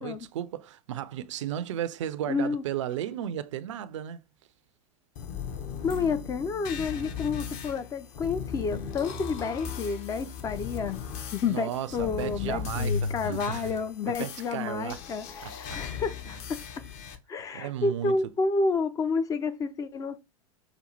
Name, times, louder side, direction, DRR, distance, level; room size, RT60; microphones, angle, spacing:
voice 1, 0.0-4.2 11.4-13.7 14.1-15.0 15.4-15.8 17.5-18.2, right 11 dB, 55° right, 0.4 m, -34 dB
voice 2, 2.3-2.6 5.8-11.0 11.3-16.6 17.3-20.2, left 4 dB, 20° left, 0.4 m, -30 dB
sound 1, 5.2-17.2, left 6 dB, 40° left, 0.7 m, -37 dB
5.0 x 2.3 x 4.2 m
figure-of-eight pair, 90°, 19 cm